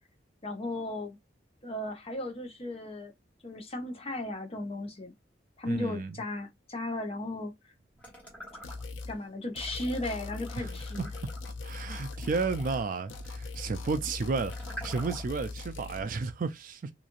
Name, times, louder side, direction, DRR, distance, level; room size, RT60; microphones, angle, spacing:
voice 1, 0.4-1.2 1.6-3.1 3.4-5.1 5.6-7.5 9.1-11.1, left 2 dB, 30° left, 0.7 m, -36 dB
voice 2, 5.6-6.1 10.6-11.1 11.6-16.9, right 4 dB, 45° right, 0.4 m, -33 dB
sound 1, 8.0-9.1 9.5-15.5, right 1 dB, 10° left, 1.1 m, -48 dB
sound 2, 8.6-9.2 9.6-12.8 13.1-16.0, left 3 dB, 85° left, 0.5 m, -40 dB
3.0 x 2.4 x 2.5 m
head